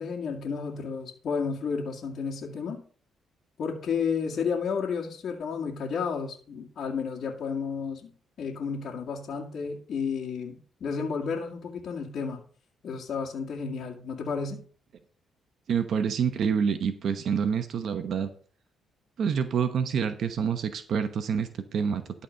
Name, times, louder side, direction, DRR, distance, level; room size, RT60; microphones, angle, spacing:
voice 1, 0.0-2.8 3.6-8.1 8.4-12.4 12.8-14.6, left 5 dB, 60° left, -1 dB, 1.9 m, -32 dB
voice 2, 15.7-18.3 19.2-22.2, right 7 dB, 65° right, 9 dB, 0.9 m, -27 dB
12.5 x 4.2 x 6.4 m, 0.43 s
cardioid pair, 90°, 0 cm